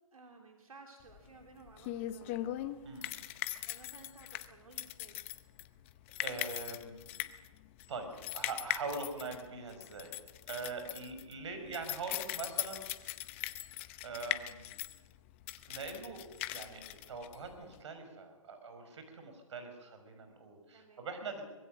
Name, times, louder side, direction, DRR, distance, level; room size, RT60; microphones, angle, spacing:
voice 1, 0.0-2.5 3.7-5.2 20.7-21.0, right 3 dB, 80° right, 2 dB, 3.4 m, -56 dB
sound 1, 1.1-17.8, left 15 dB, 20° left, 0.7 m, -40 dB
voice 2, 6.2-7.0 7.9-10.2 10.5-12.8 14.0-14.8 15.6-21.4, right 4 dB, 55° right, 7 dB, 5.2 m, -43 dB
24.0 x 21.0 x 6.4 m, 1.2 s
hypercardioid pair, 155°, 18 cm